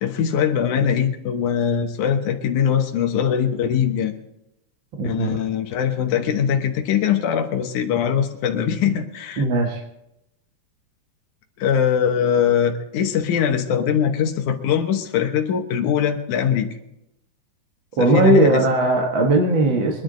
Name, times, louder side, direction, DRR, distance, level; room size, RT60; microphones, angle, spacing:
voice 1, 0.0-4.2 5.0-9.4 11.6-16.7 18.0-18.6, left 8 dB, 80° left, 4 dB, 2.6 m, -21 dB
voice 2, 4.9-5.3 9.4-9.8 18.0-20.0, right 2 dB, 50° right, 1 dB, 1.8 m, -18 dB
24.0 x 10.5 x 3.9 m, 0.84 s
omnidirectional pair, 3.4 m